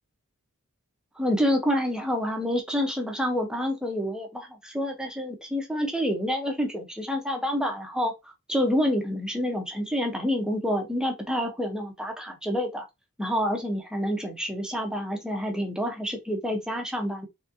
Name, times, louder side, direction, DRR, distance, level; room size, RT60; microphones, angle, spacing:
voice 1, 1.2-8.1 8.5-12.8 13.2-17.3, equal, 5° right, 1.0 m, -28 dB
4.0 x 3.6 x 2.8 m
head